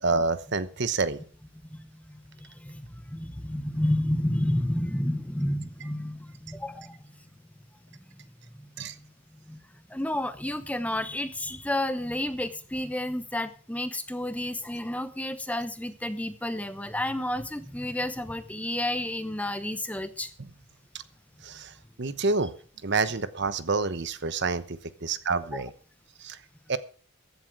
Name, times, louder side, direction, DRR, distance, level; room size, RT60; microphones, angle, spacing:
voice 1, 0.0-1.2 8.8-8.9 21.4-22.5 22.8-25.7 26.2-26.4 26.7-26.8, right 4 dB, 50° right, 13 dB, 1.0 m, -28 dB
voice 2, 1.7-7.0 9.5-9.6 9.9-20.3 25.5-25.6, left 1 dB, 5° left, 12 dB, 0.8 m, -31 dB
15.5 x 11.5 x 4.7 m, 0.39 s
head